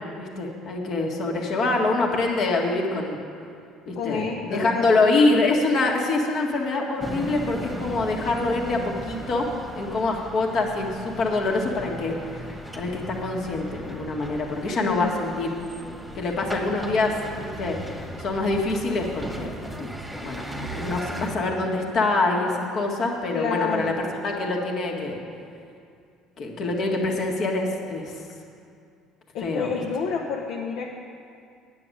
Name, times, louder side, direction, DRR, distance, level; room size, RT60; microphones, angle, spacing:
voice 1, 0.2-3.2 3.9-9.5 9.8-15.5 16.1-19.5 19.8-19.9 20.2-25.2 26.4-28.1 29.4-29.8, left 2 dB, 50° left, 0 dB, 1.9 m, -25 dB
voice 2, 4.0-4.9 5.3-5.4 14.8-15.1 23.3-24.0 29.3-30.9, left 6 dB, 70° left, 1 dB, 1.0 m, -29 dB
sound 1, 7.0-21.3, right 1 dB, 5° right, 1.4 m, -37 dB
9.8 x 6.9 x 9.2 m, 2.4 s
cardioid pair, 115°, 0 cm